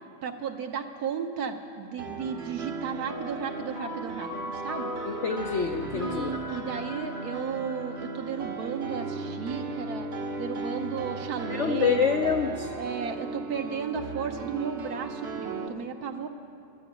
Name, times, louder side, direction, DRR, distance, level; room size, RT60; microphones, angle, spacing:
voice 1, 0.2-4.9 5.9-10.1 10.4-12.3 12.8-16.3, right 6 dB, 60° right, 6 dB, 1.2 m, -34 dB
Piano, 2.0-15.7, right 3 dB, 45° right, 1.0 m, -36 dB
sound 1, 3.1-8.8, left 2 dB, 90° left, 2.9 m, -40 dB
voice 2, 5.1-6.3 11.5-12.7, left 6 dB, 65° left, 4 dB, 0.7 m, -26 dB
12.5 x 10.0 x 9.0 m, 2.9 s
omnidirectional pair, 2.0 m